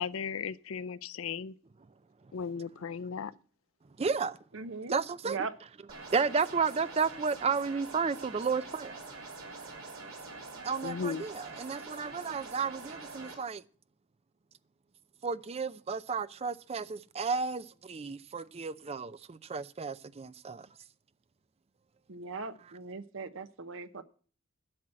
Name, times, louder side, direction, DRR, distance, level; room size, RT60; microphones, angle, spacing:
voice 1, 0.0-1.6 2.3-3.3 10.8-11.3, left 6 dB, 70° left, 0.5 m, -36 dB
voice 2, 4.0-4.4 4.9-5.4 6.1-9.0 10.6-13.6 15.2-20.7, right 5 dB, 30° right, 0.4 m, -32 dB
voice 3, 4.5-4.9 5.2-5.6 22.1-24.0, right 4 dB, 65° right, 0.9 m, -39 dB
sound 1, 5.9-13.3, right 3 dB, 80° right, 3.3 m, -45 dB
12.0 x 6.1 x 7.6 m
head